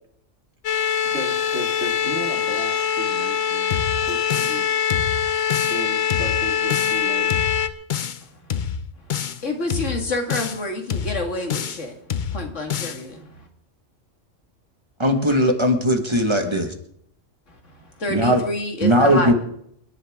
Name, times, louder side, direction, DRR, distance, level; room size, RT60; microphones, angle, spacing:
sound 1, 0.6-7.7, left 8 dB, 90° left, 1.3 m, -23 dB
voice 1, 1.0-3.7 4.0-4.7 5.7-7.3, right 2 dB, 60° right, 1 dB, 2.8 m, -34 dB
sound 2, 3.7-4.6 4.9-5.8 6.1-7.0 7.3-8.2 8.5-9.4 9.7-10.6 10.9-11.8 12.1-13.0, left 8 dB, 50° left, 0.7 m, -28 dB
voice 2, 9.4-11.9 12.3-13.5 17.5-19.3, left 2 dB, 70° left, 3 dB, 2.4 m, -28 dB
voice 3, 15.0-16.7 18.1-18.4 18.8-19.3, equal, 20° right, 4 dB, 1.6 m, -18 dB
28.5 x 11.0 x 3.6 m, 0.70 s
omnidirectional pair, 1.3 m